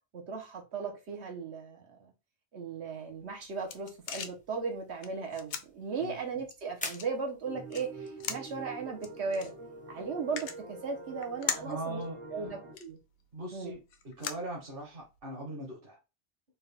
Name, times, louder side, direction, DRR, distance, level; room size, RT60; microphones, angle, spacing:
voice 1, 0.1-2.1 2.5-9.5 9.9-12.0 12.3-13.0 13.5-13.7, right 4 dB, 90° right, 2 dB, 1.3 m, -37 dB
sound 1, 3.1-15.2, left 7 dB, 70° left, 0.8 m, -43 dB
sound 2, 3.3-11.8, left 2 dB, 15° left, 0.3 m, -50 dB
sound 3, 7.4-12.8, right 2 dB, 35° right, 0.6 m, -46 dB
voice 2, 11.6-12.5 13.3-16.0, right 1 dB, 60° right, -1 dB, 1.1 m, -40 dB
4.2 x 2.4 x 3.4 m, 0.28 s
omnidirectional pair, 1.1 m